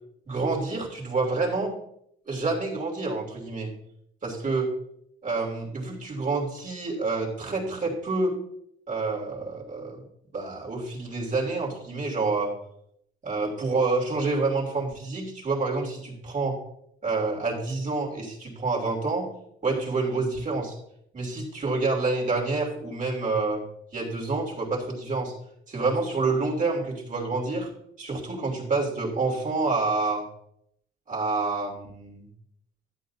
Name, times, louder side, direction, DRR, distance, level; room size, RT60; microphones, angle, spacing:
voice 1, 0.3-1.7 2.3-3.7 4.2-4.7 5.2-8.4 8.9-10.0 10.3-12.5 13.2-16.6 17.0-19.3 19.6-20.8 21.1-23.6 23.9-25.3 25.7-27.7 28.0-30.2 31.1-32.3, right 3 dB, 40° right, -1 dB, 2.9 m, -28 dB
11.5 x 8.7 x 2.8 m, 0.73 s
cardioid pair, 90°, 20 cm